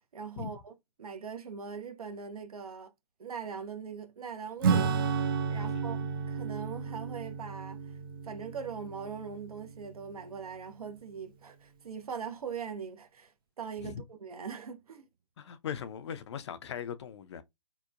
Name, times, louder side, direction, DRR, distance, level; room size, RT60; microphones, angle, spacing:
voice 1, 0.1-2.9 3.2-7.8 8.2-15.1, right 6 dB, 80° right, 0.6 m, -41 dB
Acoustic guitar / Strum, 4.6-10.6, right 6 dB, 40° right, 0.4 m, -32 dB
voice 2, 15.4-17.4, left 8 dB, 50° left, 0.4 m, -39 dB
2.8 x 2.1 x 2.3 m
hypercardioid pair, 145°, 19 cm